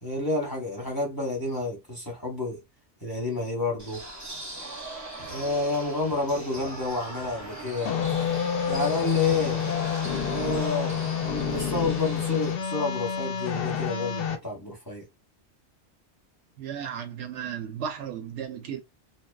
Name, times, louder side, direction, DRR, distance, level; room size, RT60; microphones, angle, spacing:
voice 1, 0.0-2.6 3.0-4.1 5.3-8.0 8.6-9.7 10.2-15.0, left 3 dB, 20° left, 0.9 m, -29 dB
sound 1, 3.8-12.5, right 1 dB, 20° right, 0.5 m, -39 dB
sound 2, 7.8-14.3, left 7 dB, 65° left, 0.7 m, -28 dB
voice 2, 16.6-18.8, right 8 dB, 85° right, 1.0 m, -35 dB
2.7 x 2.0 x 2.2 m
omnidirectional pair, 1.2 m